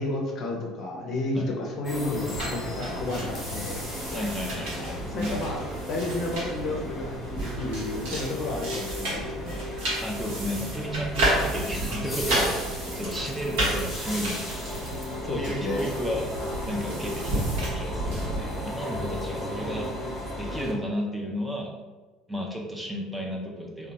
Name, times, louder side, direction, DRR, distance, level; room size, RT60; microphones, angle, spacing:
voice 1, 0.0-3.9 5.1-9.7 15.3-15.9, left 2 dB, 45° left, -1 dB, 0.6 m, -31 dB
sound 1, 1.8-20.7, left 1 dB, 15° left, 1.2 m, -35 dB
sound 2, 2.3-18.4, right 1 dB, 65° right, 1.0 m, -32 dB
voice 2, 4.1-5.4 10.0-14.8 15.2-16.3 16.6-19.9 20.4-21.7 22.3-23.9, equal, 5° right, -1 dB, 0.5 m, -33 dB
sound 3, 11.2-15.4, right 1 dB, 35° right, 1.1 m, -47 dB
2.8 x 2.2 x 2.7 m, 1.3 s
figure-of-eight pair, 65°, 0 cm